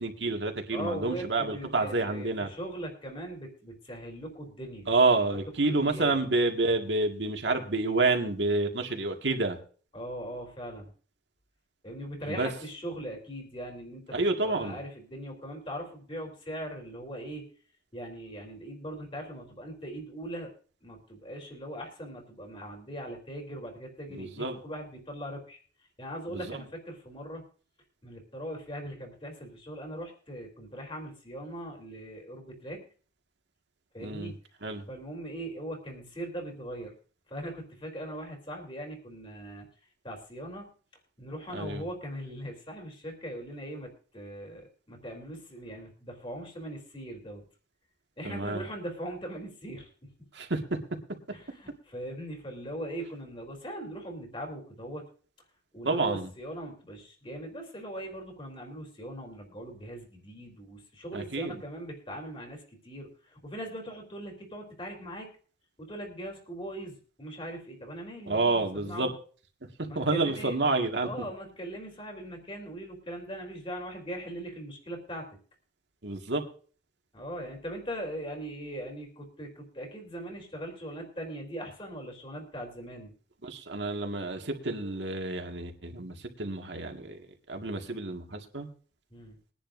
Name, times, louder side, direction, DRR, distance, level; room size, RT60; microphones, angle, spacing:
voice 1, 0.0-2.5 4.9-9.6 12.3-12.5 14.1-14.8 24.2-24.6 26.3-26.6 34.0-34.3 34.6-34.9 41.5-41.8 48.2-48.6 50.3-50.6 55.8-56.3 61.1-61.6 68.3-69.1 70.0-71.1 76.0-76.4 83.4-87.2 87.5-88.7, right 3 dB, 80° right, 4 dB, 1.8 m, -29 dB
voice 2, 0.7-4.9 5.6-6.2 9.9-10.9 11.8-14.2 14.4-17.4 17.9-20.5 20.8-25.6 26.0-27.4 28.0-32.8 33.9-34.3 34.9-36.9 37.3-39.7 40.0-40.7 41.2-47.4 48.2-50.1 51.3-55.0 55.7-65.3 65.8-69.1 69.9-70.6 71.0-75.3 77.1-83.1 89.1-89.4, right 1 dB, 30° left, 1 dB, 3.3 m, -40 dB
22.0 x 10.0 x 2.6 m, 0.41 s
head